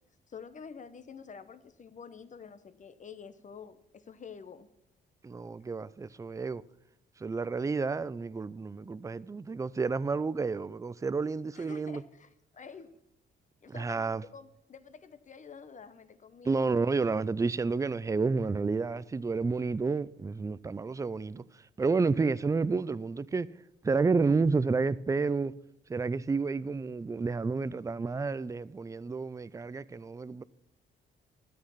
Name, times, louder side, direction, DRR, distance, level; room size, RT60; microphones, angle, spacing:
voice 1, 0.3-4.7 11.5-13.0 13.6-16.6, left 6 dB, 40° left, 0.9 m, -48 dB
voice 2, 5.2-6.6 7.2-12.0 13.7-14.2 16.4-23.5 23.8-25.5 25.9-30.4, right 4 dB, 15° right, 0.4 m, -30 dB
13.0 x 8.7 x 5.7 m
cardioid pair, 90°, 20 cm